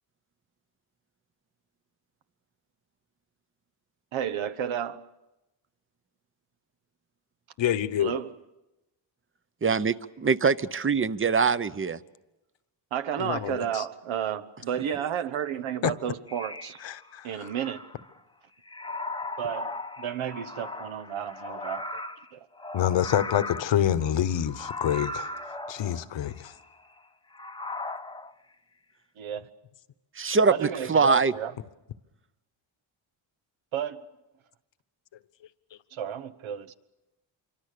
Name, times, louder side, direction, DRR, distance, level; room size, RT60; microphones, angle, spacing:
voice 1, 4.1-5.1 8.0-8.3 12.9-16.8 17.2-17.9 19.4-21.8 22.3-22.5 29.2-29.5 30.5-31.5 33.7-34.1 35.9-36.7, right 9 dB, 75° right, 11 dB, 1.3 m, -32 dB
voice 2, 7.6-8.1 13.2-13.8 15.8-15.9 16.8-17.3 22.7-25.3 25.7-26.5, left 10 dB, 65° left, 14 dB, 1.2 m, -27 dB
voice 3, 9.6-12.0 30.2-31.3, right 5 dB, 25° right, 15 dB, 0.8 m, -23 dB
sound 1, 16.3-18.2 18.7-27.0 27.3-28.3, left 2 dB, 10° left, 0.8 m, -38 dB
26.5 x 24.5 x 6.8 m, 1.0 s
cardioid pair, 90°, 48 cm